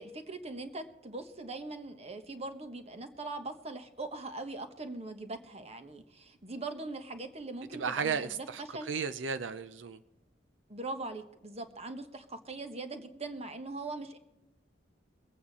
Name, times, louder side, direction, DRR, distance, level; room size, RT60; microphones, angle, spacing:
voice 1, 0.0-8.2 8.7-8.9 10.7-14.2, right 2 dB, 35° right, 1.3 m, -41 dB
voice 2, 7.7-10.0, right 6 dB, 85° right, 0.6 m, -34 dB
23.0 x 8.7 x 4.2 m
head